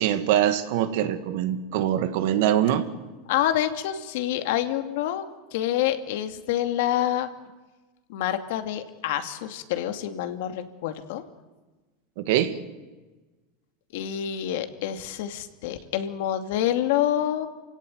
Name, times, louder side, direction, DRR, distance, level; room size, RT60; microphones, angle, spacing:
voice 1, 0.0-2.9 12.2-12.6, right 11 dB, 70° right, 10 dB, 2.1 m, -23 dB
voice 2, 3.3-5.2 5.5-7.3 8.1-11.2 13.9-17.5, left 11 dB, 75° left, 8 dB, 2.5 m, -27 dB
28.0 x 17.5 x 9.4 m, 1.2 s
supercardioid pair, 130°, 0 cm